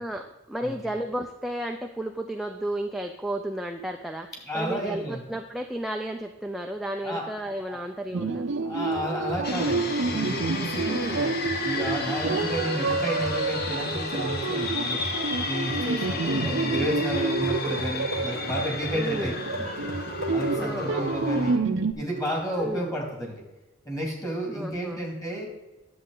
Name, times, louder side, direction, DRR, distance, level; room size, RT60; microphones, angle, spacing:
voice 1, 0.0-4.3 4.5-8.4 10.9-11.3 16.1-16.7 18.9-19.4 20.6-21.2 22.6-22.9 24.5-25.1, right 1 dB, ahead, 3 dB, 0.4 m, -33 dB
voice 2, 4.5-5.2 7.0-7.3 7.7-7.8 8.6-11.3 11.6-15.0 15.5-19.7 20.3-21.6 21.9-23.4 23.8-25.5, equal, 15° left, -1 dB, 2.6 m, -31 dB
sound 1, 8.1-21.9, right 3 dB, 70° right, 0.6 m, -29 dB
sound 2, 8.9-20.8 21.3-21.4 22.2-22.7, right 1 dB, 85° left, 2.1 m, -40 dB
sound 3, 9.4-21.6, left 3 dB, 50° left, 1.1 m, -33 dB
10.5 x 7.6 x 3.9 m, 1.0 s
head